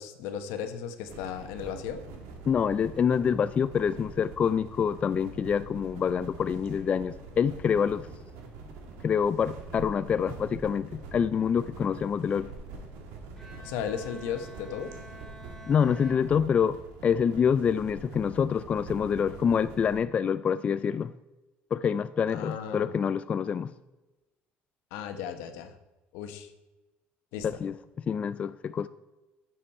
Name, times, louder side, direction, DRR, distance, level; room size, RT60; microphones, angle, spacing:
voice 1, 0.0-2.0 13.6-14.9 22.3-23.0 24.9-25.7 26.1-26.5 27.3-27.5, left 8 dB, 90° left, 8 dB, 1.1 m, -35 dB
sound 1, 1.1-20.0, right 3 dB, 90° right, 1.8 m, -45 dB
voice 2, 2.5-8.1 9.0-12.5 15.7-16.8 17.0-21.1 21.7-23.7 27.4-27.7 28.1-28.9, left 7 dB, 30° left, 13 dB, 0.3 m, -26 dB
Bowed string instrument, 13.4-17.1, right 1 dB, ahead, 2.4 m, -50 dB
10.0 x 7.3 x 4.2 m, 1.1 s
cardioid pair, 120°, 4 cm